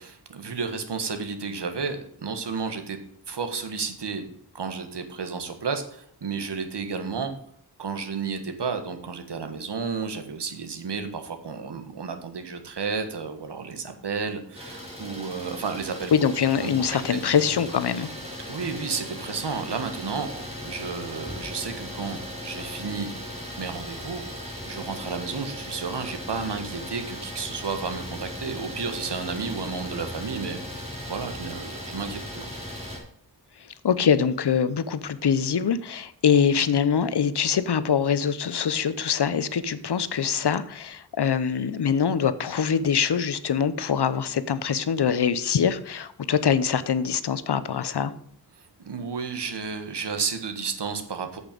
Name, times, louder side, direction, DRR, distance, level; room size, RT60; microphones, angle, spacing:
voice 1, 0.0-3.0 3.3-4.3 4.5-7.3 7.8-16.1 16.6-16.7 17.1-17.2 18.5-23.1 23.6-32.5 48.6-51.4, right 5 dB, 85° right, 7 dB, 1.6 m, -32 dB
Idling, 14.5-33.0, left 1 dB, 15° right, 4.7 m, -37 dB
voice 2, 16.1-18.1 33.8-48.1, left 7 dB, 80° left, 14 dB, 0.8 m, -24 dB
8.7 x 8.0 x 5.3 m, 0.63 s
wide cardioid pair, 80°, 40 cm